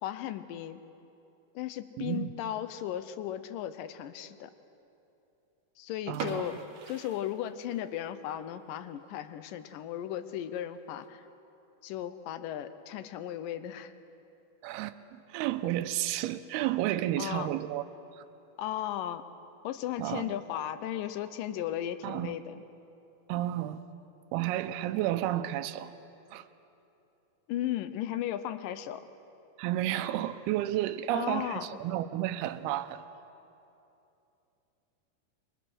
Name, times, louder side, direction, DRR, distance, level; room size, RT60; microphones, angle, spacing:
voice 1, 0.0-0.8 1.6-4.5 5.8-6.6 6.9-11.2 11.8-13.9 17.2-17.5 18.6-19.2 19.6-22.6 27.5-29.1 31.1-31.6, left 11 dB, 75° left, 11 dB, 2.2 m, -36 dB
voice 2, 2.0-2.3 6.1-6.5 14.6-15.0 15.3-17.8 20.0-20.4 22.0-22.4 23.3-23.8 24.3-25.9 26.3-26.5 29.6-33.0, right 13 dB, 85° right, 10 dB, 2.7 m, -31 dB
sound 1, 6.1-8.0 8.3-8.4 8.9-9.1 9.5-9.6 9.9-10.0 10.7-11.1, right 5 dB, 55° right, 2.8 m, -41 dB
28.5 x 23.0 x 6.3 m, 2.9 s
omnidirectional pair, 4.5 m